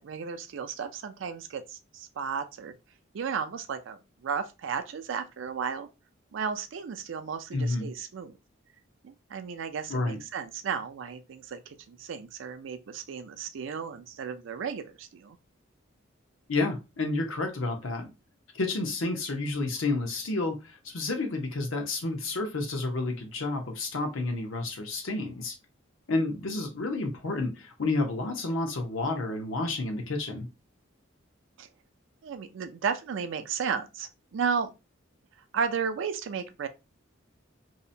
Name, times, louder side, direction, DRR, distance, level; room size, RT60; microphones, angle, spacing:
voice 1, 0.0-2.7 3.1-5.9 6.3-8.3 9.0-11.6 11.9-15.4 31.6-31.7 32.2-34.7 35.5-36.7, right 6 dB, 70° right, 0.4 m, -34 dB
voice 2, 7.5-7.9 9.9-10.2 16.5-18.1 18.5-25.5 26.1-30.5, left 2 dB, 80° left, 0.7 m, -30 dB
2.7 x 2.1 x 2.6 m
head